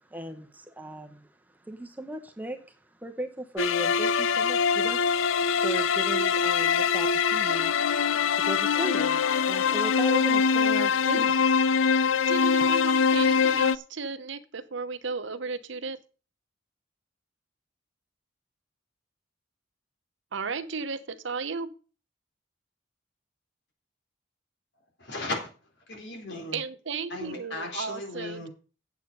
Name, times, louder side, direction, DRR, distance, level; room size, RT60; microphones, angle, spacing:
voice 1, 0.1-1.3 1.6-2.7 3.0-5.0 5.6-7.7 8.3-11.4 11.7-12.3, right 1 dB, 10° right, 5 dB, 0.9 m, -37 dB
sound 1, 3.6-13.8, left 6 dB, 80° left, 0.5 m, -23 dB
voice 2, 12.3-16.0 20.3-21.7 26.5-28.5, right 4 dB, 65° right, 12 dB, 0.9 m, -34 dB
voice 3, 25.0-25.5 25.9-26.6 27.1-28.5, left 2 dB, 60° left, 2 dB, 3.8 m, -36 dB
8.7 x 8.2 x 5.3 m, 0.37 s
head